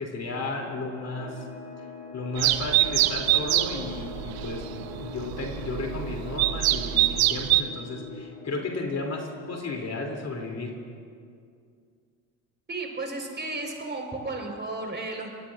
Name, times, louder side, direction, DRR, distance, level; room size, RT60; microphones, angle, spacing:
voice 1, 0.0-1.4 2.1-4.7 5.0-10.8, left 3 dB, 40° left, 1 dB, 2.9 m, -33 dB
sound 1, 1.0-10.3, left 3 dB, 75° left, 4.6 m, -43 dB
sound 2, 2.4-7.6, right 15 dB, 60° right, 0.8 m, -25 dB
voice 2, 12.7-15.3, right 2 dB, 25° right, 1 dB, 4.4 m, -33 dB
27.0 x 20.0 x 2.5 m, 2.3 s
hypercardioid pair, 70°, 42 cm